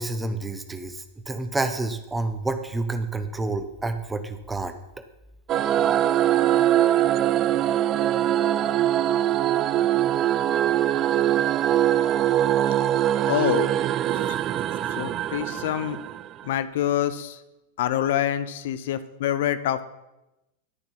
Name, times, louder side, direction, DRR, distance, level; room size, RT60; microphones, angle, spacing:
voice 1, 0.0-4.8, right 2 dB, 10° right, 8 dB, 1.0 m, -29 dB
sound 1, 5.5-16.4, right 12 dB, 30° right, 0.3 m, -22 dB
voice 2, 13.3-13.7 14.1-14.4 14.9-16.0 16.4-17.4 17.8-19.8, left 11 dB, 55° left, 13 dB, 0.6 m, -26 dB
11.5 x 6.8 x 5.8 m, 0.96 s
figure-of-eight pair, 90°, 0 cm